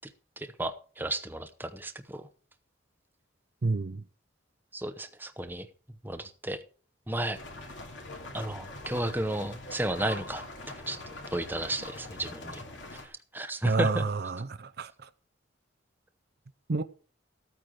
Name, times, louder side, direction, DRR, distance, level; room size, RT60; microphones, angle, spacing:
voice 1, 0.4-2.2 4.7-5.7 6.0-6.6 7.1-7.4 8.3-10.4 10.9-11.0 11.3-12.6 13.3-14.0, right 1 dB, 10° right, 0.8 m, -33 dB
voice 2, 3.6-4.0 13.6-15.1 16.7-16.8, right 3 dB, 50° right, 0.6 m, -29 dB
sound 1, 7.3-13.1, left 2 dB, 65° left, 2.9 m, -43 dB
14.0 x 8.9 x 4.8 m
head